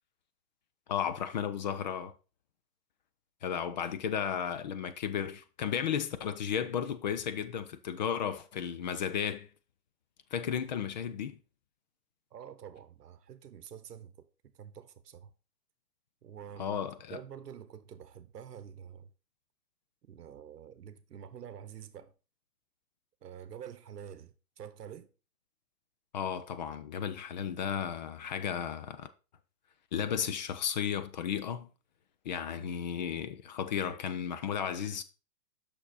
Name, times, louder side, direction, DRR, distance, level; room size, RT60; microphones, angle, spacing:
voice 1, 0.9-2.1 3.4-9.5 10.3-11.4 16.6-17.2 26.1-29.1 29.9-31.7 32.2-35.0, left 8 dB, 30° left, 0.5 m, -34 dB
voice 2, 12.3-14.3 14.6-15.3 16.2-16.8 17.1-19.1 20.1-22.1 23.2-25.1, right 8 dB, 75° right, 0.9 m, -47 dB
6.4 x 6.3 x 4.1 m
hypercardioid pair, 135°, 48 cm